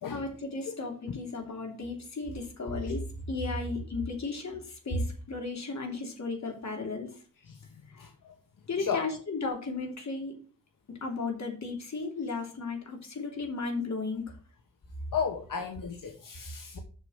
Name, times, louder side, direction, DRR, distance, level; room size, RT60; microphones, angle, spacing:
voice 1, 0.1-7.2 8.7-10.3 11.0-14.2, left 3 dB, 55° left, 3.1 m, -34 dB
voice 2, 7.4-8.3 8.8-9.0 15.1-16.8, left 6 dB, 85° left, 1.2 m, -35 dB
7.0 x 6.5 x 6.2 m
wide cardioid pair, 155°, 32 cm